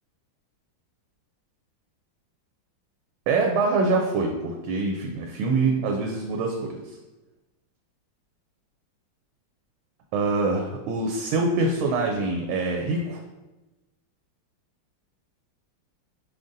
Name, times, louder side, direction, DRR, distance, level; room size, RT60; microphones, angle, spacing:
voice 1, 3.3-6.7 10.1-13.2, right 3 dB, 80° right, 1 dB, 1.3 m, -24 dB
5.4 x 3.6 x 2.6 m, 1.1 s
omnidirectional pair, 2.2 m